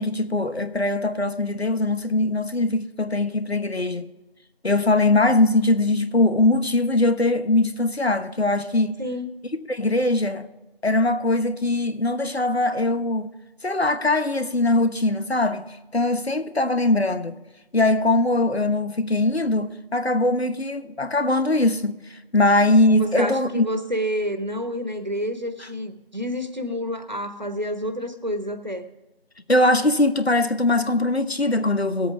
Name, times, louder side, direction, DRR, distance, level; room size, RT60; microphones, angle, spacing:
voice 1, 0.0-4.1 4.6-9.0 9.7-10.5 10.8-13.3 13.6-17.4 17.7-23.7 29.5-32.1, left 2 dB, 85° left, 1.2 m, -21 dB
voice 2, 9.0-9.3 23.0-28.9, equal, 45° right, 1.2 m, -29 dB
19.0 x 8.3 x 3.5 m
figure-of-eight pair, 180°, 31 cm